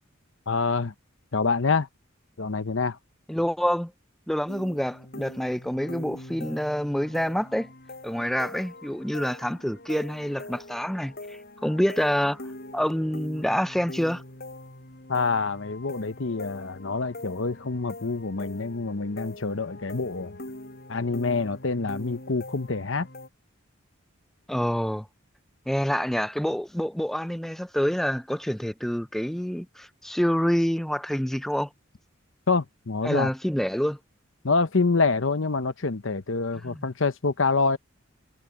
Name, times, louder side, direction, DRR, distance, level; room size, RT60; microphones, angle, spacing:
voice 1, 0.5-0.9 1.3-1.9 2.4-3.0 15.1-20.4 20.9-23.1 32.5-33.3 34.4-37.8, left 4 dB, 65° left, 0.9 m, -26 dB
voice 2, 3.3-3.9 4.3-7.7 8.0-12.4 12.7-14.2 24.5-25.1 25.7-31.7 33.0-34.0 36.6-36.8, equal, ahead, 0.3 m, -27 dB
sound 1, 4.5-23.3, left 1 dB, 50° left, 6.6 m, -43 dB
head